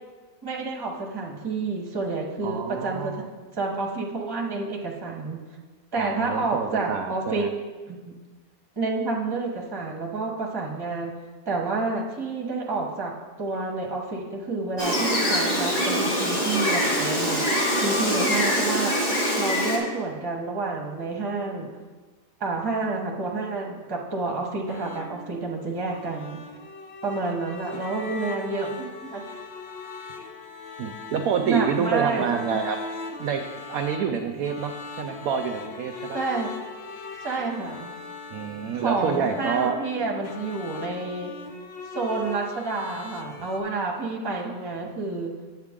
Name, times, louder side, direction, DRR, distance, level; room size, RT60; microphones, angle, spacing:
voice 1, 0.4-3.1 3.6-5.4 5.9-7.5 7.9-8.1 8.8-11.1 11.5-13.1 13.4-17.4 17.8-18.9 19.4-21.7 22.4-26.4 27.0-29.4 31.5-32.6 36.1-36.5 37.2-38.0 38.7-41.3 41.9-45.3, right 3 dB, 15° right, -1 dB, 0.9 m, -29 dB
voice 2, 2.4-3.2 5.9-7.5 30.8-32.8 33.2-36.2 38.3-39.7, right 7 dB, 70° right, 5 dB, 0.8 m, -27 dB
Gull seagull, 14.8-19.8, equal, 40° left, 1.8 m, -24 dB
sound 1, 24.7-43.6, left 3 dB, 70° left, 0.6 m, -40 dB
8.2 x 7.9 x 3.6 m, 1.3 s
omnidirectional pair, 1.9 m